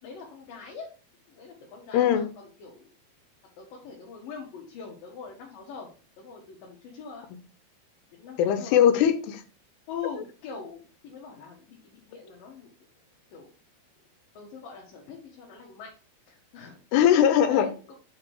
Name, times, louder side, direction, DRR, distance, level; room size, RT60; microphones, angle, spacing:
voice 1, 0.0-0.9 1.3-2.9 3.6-5.9 6.2-7.2 8.1-8.8 9.9-12.7 13.3-13.5 14.3-15.9 16.3-16.8 17.5-18.0, left 6 dB, 65° left, -2 dB, 2.9 m, -42 dB
voice 2, 1.9-2.3 8.4-9.4 16.9-17.7, left 9 dB, 85° left, 10 dB, 2.9 m, -20 dB
6.6 x 4.8 x 4.6 m, 0.36 s
omnidirectional pair, 4.6 m